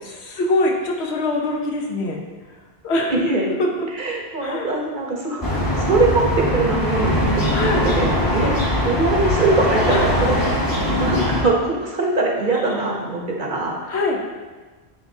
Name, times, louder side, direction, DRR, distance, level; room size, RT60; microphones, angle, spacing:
voice 1, 0.2-2.2 2.5-3.1 3.6-3.9 4.4-4.8 7.5-7.9 8.4-8.5 9.9-10.1 12.5-12.9 13.9-14.2, left 2 dB, 80° left, 0 dB, 1.1 m, -24 dB
voice 2, 3.1-3.5 4.0-10.6 11.0-13.9, right 2 dB, 50° right, -1 dB, 1.0 m, -22 dB
sound 1, 5.4-11.4, left 1 dB, 20° left, 0.9 m, -21 dB
10.0 x 3.5 x 2.7 m, 1.3 s
omnidirectional pair, 1.1 m